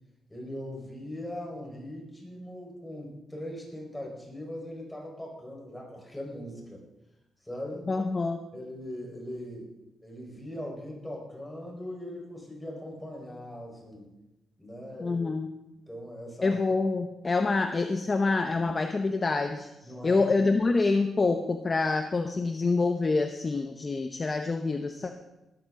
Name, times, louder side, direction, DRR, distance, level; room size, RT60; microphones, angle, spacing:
voice 1, 0.3-6.8 7.4-7.9 8.5-9.7 10.0-14.0 14.6-15.2 15.9-16.6 19.8-20.3, left 1 dB, 10° left, -1 dB, 4.5 m, -40 dB
voice 2, 7.9-8.4 15.0-15.5 16.4-19.7 20.0-25.1, left 3 dB, 30° left, 6 dB, 0.8 m, -26 dB
19.5 x 13.5 x 3.8 m, 0.97 s
cardioid pair, 130°, 0 cm